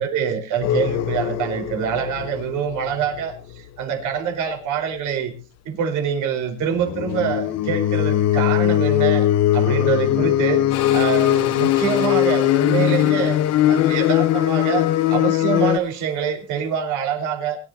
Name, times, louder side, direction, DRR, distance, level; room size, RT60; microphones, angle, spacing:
voice 1, 0.0-5.3 5.6-9.3 9.5-13.4 13.7-17.6, right 8 dB, 70° right, 4 dB, 4.4 m, -25 dB
sound 1, 0.6-3.6 6.7-15.8, left 12 dB, 55° left, 1.0 m, -20 dB
sound 2, 10.7-16.2, left 10 dB, 90° left, 2.9 m, -34 dB
23.5 x 11.5 x 2.8 m, 0.31 s
cardioid pair, 125°, 31 cm